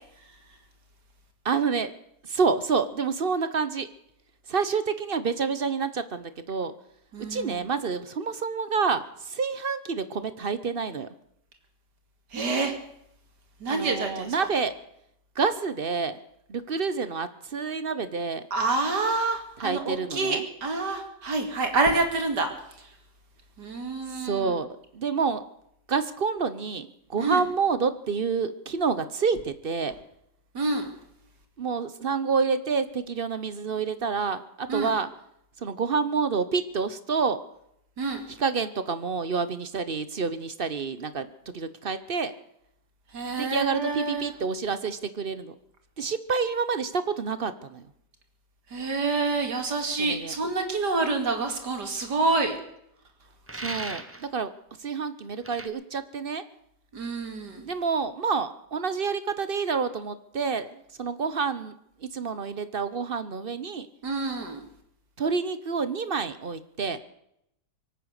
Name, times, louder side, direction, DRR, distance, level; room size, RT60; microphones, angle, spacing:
voice 1, 1.4-1.9 2.2-3.9 4.5-6.7 7.3-11.1 13.7-14.7 15.4-16.2 16.5-18.4 19.6-20.4 24.2-25.4 25.9-29.9 31.6-35.1 35.6-37.4 38.3-42.3 43.4-45.5 46.0-47.9 50.0-50.4 53.5-54.5 54.8-56.4 57.6-61.7 62.0-63.9 65.2-67.0, right 5 dB, 45° right, 13 dB, 0.7 m, -28 dB
voice 2, 7.1-7.6 12.3-12.7 13.6-14.3 18.5-22.5 23.6-24.5 27.2-27.4 30.5-30.9 34.7-34.9 38.0-38.3 43.1-44.3 48.7-52.6 56.9-57.7 64.0-64.6, right 3 dB, 70° right, 5 dB, 3.0 m, -27 dB
Large Chains, 53.5-54.3 55.4-55.7, right 2 dB, 15° right, 0.6 m, -36 dB
23.5 x 9.1 x 6.5 m, 0.76 s
omnidirectional pair, 1.9 m